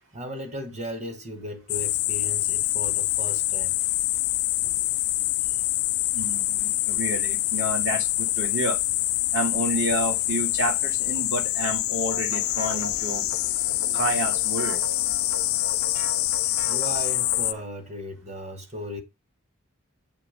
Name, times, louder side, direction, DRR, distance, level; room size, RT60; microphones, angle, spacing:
voice 1, 0.1-3.8 4.6-4.8 16.7-19.0, equal, 30° right, 1.2 m, -36 dB
sound 1, 1.7-17.5, left 17 dB, 80° left, 0.4 m, -25 dB
voice 2, 6.1-8.8 9.3-13.2 13.9-14.8, right 1 dB, 65° right, 1.9 m, -29 dB
sound 2, 12.1-17.6, equal, 85° right, 1.6 m, -39 dB
7.3 x 3.2 x 5.0 m
head